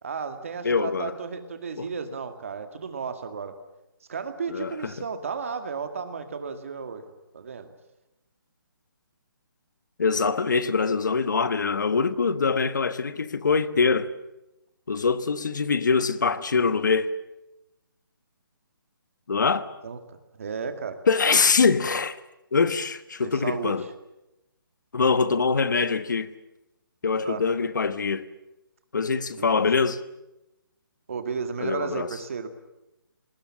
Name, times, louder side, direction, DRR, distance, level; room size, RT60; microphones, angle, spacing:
voice 1, 0.0-3.6 4.1-7.7 19.4-19.5 19.8-21.0 23.2-23.8 27.2-27.4 29.4-29.7 31.1-32.5, right 5 dB, 35° right, 2.1 m, -34 dB
voice 2, 0.6-1.1 1.8-1.9 4.5-4.9 10.0-14.1 14.9-17.1 19.3-19.7 21.1-22.2 22.5-23.9 24.9-26.3 27.0-28.3 28.9-30.0 31.6-32.1, left 5 dB, 55° left, 1.2 m, -23 dB
28.0 x 20.0 x 7.4 m
hypercardioid pair, 180°, 12 cm